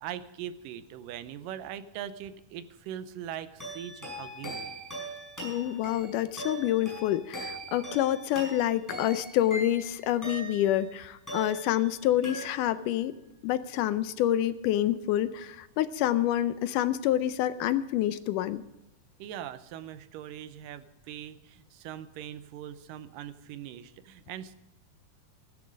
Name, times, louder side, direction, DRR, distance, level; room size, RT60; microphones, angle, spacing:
voice 1, 0.0-4.7 19.2-24.5, right 10 dB, 85° right, 13 dB, 2.4 m, -41 dB
sound 1, 3.6-10.8 11.3-12.0 12.2-12.9, right 1 dB, 5° left, 5.9 m, -41 dB
voice 2, 5.4-13.1 13.4-18.6, left 12 dB, 80° left, 13 dB, 2.1 m, -27 dB
15.0 x 12.5 x 5.2 m, 0.89 s
omnidirectional pair, 3.8 m